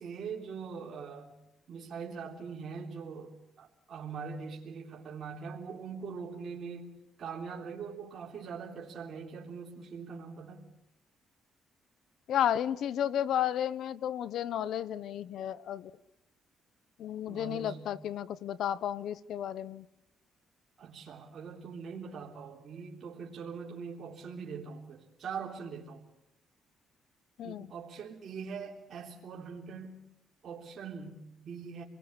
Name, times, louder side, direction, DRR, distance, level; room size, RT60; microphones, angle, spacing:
voice 1, 0.0-1.4 1.7-6.9 7.2-10.7 17.3-18.0 20.8-26.0 27.4-30.0 30.4-31.8, right 5 dB, 55° right, 3.6 m, -42 dB
voice 2, 12.3-15.9 17.0-19.9 27.4-27.7, left 10 dB, 75° left, 1.0 m, -32 dB
27.5 x 21.0 x 8.1 m
cardioid pair, 90°, 0 cm